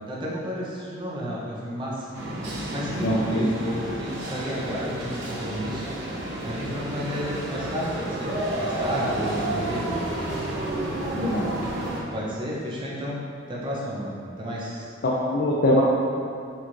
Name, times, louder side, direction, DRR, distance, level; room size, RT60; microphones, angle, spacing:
voice 1, 0.1-2.1 2.4-5.9 6.4-9.9 12.1-13.2 13.5-14.9, equal, 25° right, -5 dB, 0.6 m, -32 dB
sound 1, 2.1-12.0, right 1 dB, 80° right, 0.7 m, -31 dB
voice 2, 3.0-3.4 11.1-11.5 15.0-15.8, left 1 dB, 55° left, -5 dB, 0.4 m, -23 dB
4.3 x 2.5 x 2.9 m, 2.3 s
head